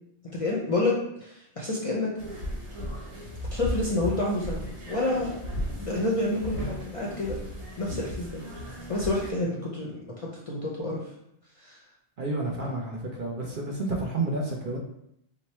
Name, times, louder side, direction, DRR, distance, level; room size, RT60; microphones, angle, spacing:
voice 1, 0.3-2.2 3.5-5.4 5.8-7.4 7.8-8.4 8.9-11.0 11.6-11.8, left 2 dB, 40° left, -4 dB, 0.5 m, -29 dB
sound 1, 2.2-9.3, equal, 90° right, 1.4 m, -35 dB
voice 2, 12.2-14.8, right 2 dB, 55° right, -1 dB, 0.7 m, -30 dB
3.0 x 2.1 x 4.2 m, 0.76 s
omnidirectional pair, 1.1 m